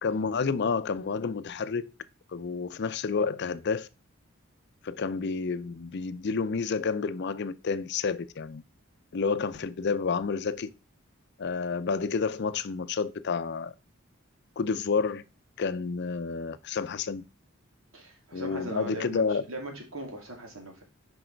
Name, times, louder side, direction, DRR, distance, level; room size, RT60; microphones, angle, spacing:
voice 1, 0.0-1.9 2.3-3.9 4.8-8.6 9.1-10.7 11.4-13.7 14.6-15.2 15.6-17.2 18.3-19.4, left 5 dB, 55° left, 0.5 m, -30 dB
voice 2, 17.9-20.8, right 1 dB, 85° right, 2.3 m, -39 dB
6.2 x 5.4 x 4.5 m
head